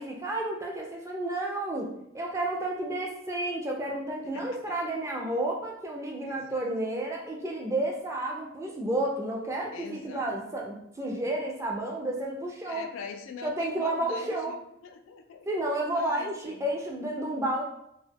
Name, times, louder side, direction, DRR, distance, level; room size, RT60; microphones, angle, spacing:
voice 1, 0.0-12.9 13.4-14.6 15.5-17.6, right 1 dB, 15° right, -1 dB, 0.3 m, -31 dB
voice 2, 4.3-4.8 6.2-6.7 9.7-10.3 12.7-15.7 15.9-16.7, left 5 dB, 90° left, 5 dB, 0.3 m, -43 dB
2.2 x 2.1 x 3.3 m, 0.76 s
head